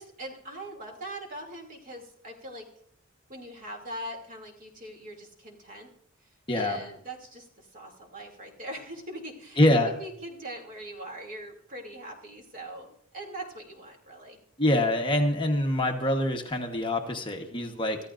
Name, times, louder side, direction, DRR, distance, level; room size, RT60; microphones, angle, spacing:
voice 1, 0.0-2.7 3.3-5.9 6.5-14.4, right 1 dB, 40° right, 1 dB, 2.7 m, -41 dB
voice 2, 6.5-6.8 9.6-9.9 14.6-18.0, left 1 dB, 25° left, 2 dB, 1.2 m, -25 dB
25.0 x 14.0 x 2.6 m, 0.67 s
head